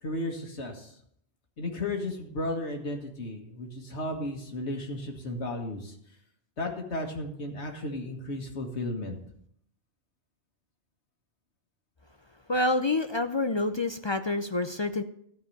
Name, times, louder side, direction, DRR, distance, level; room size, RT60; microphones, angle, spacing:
voice 1, 0.0-1.0 1.6-6.0 6.6-9.2, left 1 dB, 90° left, 3 dB, 2.0 m, -34 dB
voice 2, 12.5-15.0, left 2 dB, 40° left, 9 dB, 0.4 m, -27 dB
13.0 x 4.8 x 8.6 m, 0.70 s
omnidirectional pair, 1.1 m